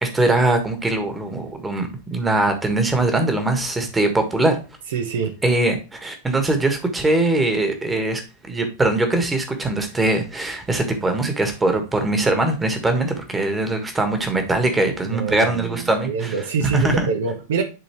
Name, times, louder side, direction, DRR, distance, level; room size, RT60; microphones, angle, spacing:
voice 1, 0.0-4.6 5.4-8.2 8.5-16.3 16.6-17.1, right 2 dB, 10° right, 1.6 m, -21 dB
voice 2, 4.9-5.3 15.0-17.6, right 5 dB, 60° right, 0.9 m, -25 dB
10.5 x 3.8 x 3.1 m
figure-of-eight pair, 90°, 0 cm